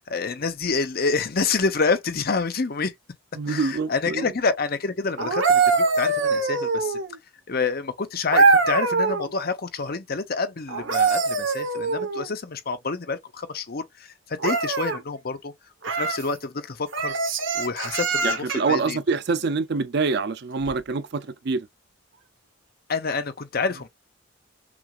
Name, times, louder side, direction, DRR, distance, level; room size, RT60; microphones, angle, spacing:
voice 1, 0.1-2.9 3.5-7.0 7.5-15.5 15.9-17.1 17.5-19.0 22.9-23.9, left 4 dB, 50° left, 0.7 m, -28 dB
voice 2, 3.4-4.3 18.2-21.7, right 4 dB, 60° right, 0.5 m, -25 dB
sound 1, 5.2-7.2 8.3-9.3 10.7-12.3 14.4-15.0 15.8-16.3 16.9-18.7 20.6-20.8, right 4 dB, 75° right, 1.2 m, -23 dB
6.0 x 2.5 x 2.4 m
head